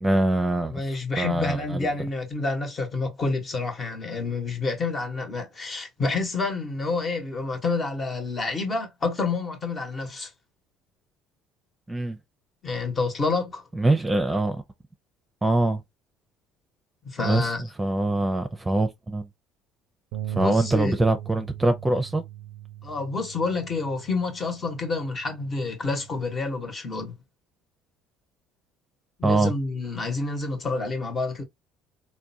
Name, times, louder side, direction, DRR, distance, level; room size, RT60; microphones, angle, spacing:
voice 1, 0.0-0.8 1.2-1.9 11.9-12.2 13.7-14.6 15.4-15.8 17.2-17.5 17.8-19.3 20.3-22.2 29.2-29.5, right 2 dB, 15° right, 0.7 m, -23 dB
voice 2, 0.7-10.3 12.6-13.7 17.0-17.6 20.3-20.9 22.8-27.2 29.2-31.4, left 3 dB, 35° left, 1.2 m, -28 dB
sound 1, 20.1-26.4, right 13 dB, 75° right, 0.4 m, -39 dB
3.5 x 2.2 x 2.7 m
hypercardioid pair, 65°, 0 cm